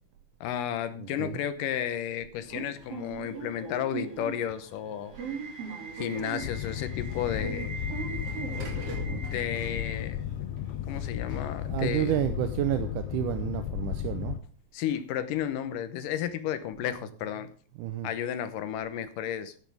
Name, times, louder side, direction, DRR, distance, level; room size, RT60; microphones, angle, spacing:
voice 1, 0.4-5.1 5.9-7.7 9.2-10.2 10.9-12.2 14.7-17.5 18.0-19.5, left 10 dB, 70° left, 12 dB, 2.4 m, -33 dB
voice 2, 1.0-1.4 8.9-9.2 11.6-14.4 17.8-18.1, right 12 dB, 75° right, 9 dB, 2.0 m, -30 dB
Subway metro underground / Alarm, 2.4-12.3, right 4 dB, 40° right, 3.6 m, -40 dB
Boat Water vehicle, 6.4-14.4, left 11 dB, 85° left, 2.6 m, -34 dB
14.5 x 10.5 x 3.5 m, 0.42 s
omnidirectional pair, 4.3 m